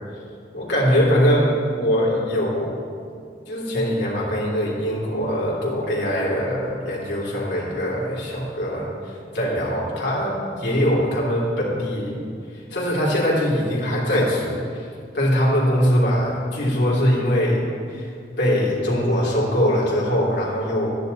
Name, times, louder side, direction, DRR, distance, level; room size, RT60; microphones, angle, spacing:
voice 1, 0.5-1.5 1.7-2.8 3.5-12.2 12.5-14.8 15.1-18.1 18.4-20.9, equal, 85° left, -6 dB, 3.2 m, -22 dB
12.5 x 10.5 x 4.1 m, 2.3 s
head